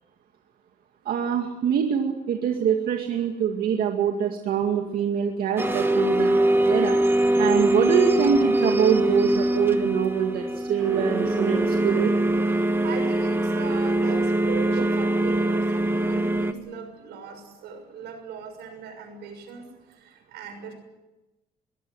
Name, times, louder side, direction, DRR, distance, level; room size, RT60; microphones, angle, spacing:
voice 1, 1.1-6.4 6.6-7.0 7.4-12.1 14.8-14.9, right 8 dB, 60° right, 3 dB, 2.2 m, -24 dB
sound 1, 5.6-16.5, right 1 dB, 15° right, 1.9 m, -23 dB
voice 2, 12.6-20.7, right 6 dB, 80° right, 6 dB, 6.4 m, -40 dB
22.5 x 16.5 x 9.5 m, 1.1 s
cardioid pair, 110°, 17 cm